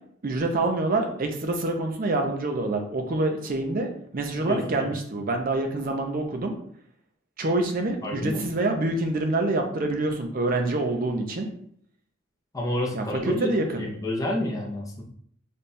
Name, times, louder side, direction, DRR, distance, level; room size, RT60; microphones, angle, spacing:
voice 1, 0.2-6.6 7.4-11.5 12.9-13.9, right 2 dB, 40° right, 4 dB, 0.5 m, -26 dB
voice 2, 4.3-4.9 8.0-8.4 12.5-15.0, left 1 dB, 15° left, -3 dB, 0.6 m, -29 dB
3.4 x 2.3 x 4.1 m, 0.64 s
head